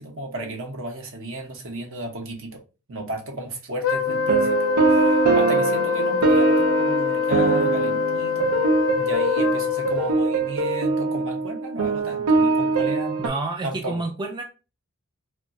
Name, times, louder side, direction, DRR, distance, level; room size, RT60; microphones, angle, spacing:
voice 1, 0.0-2.6 2.9-8.6 8.9-13.3 13.6-14.1, right 1 dB, 65° right, 0.9 m, -34 dB
Wind instrument woodwind instrument, 3.8-10.1, left 8 dB, 65° left, 0.5 m, -25 dB
sound 1, 4.1-13.3, right 4 dB, 85° right, 0.5 m, -22 dB
voice 2, 13.2-14.4, right 2 dB, 20° right, 0.3 m, -29 dB
2.3 x 2.3 x 3.9 m
head